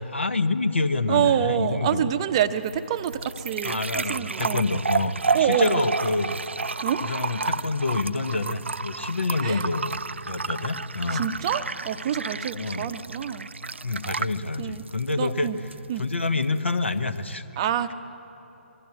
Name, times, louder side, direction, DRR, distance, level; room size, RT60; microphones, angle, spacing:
voice 1, 0.0-2.1 3.6-6.4 7.0-11.3 12.5-12.9 13.8-15.5 16.0-17.4, left 3 dB, 75° left, 9 dB, 1.1 m, -27 dB
voice 2, 1.1-4.6 5.3-5.8 6.8-7.0 9.4-9.6 11.1-13.5 14.6-14.8 15.2-15.6 15.9-16.0 17.6-17.9, right 10 dB, 25° right, 10 dB, 0.6 m, -26 dB
sound 1, 2.4-17.3, right 4 dB, 75° right, 0.4 m, -32 dB
21.5 x 14.0 x 9.6 m, 2.9 s
figure-of-eight pair, 140°, 7 cm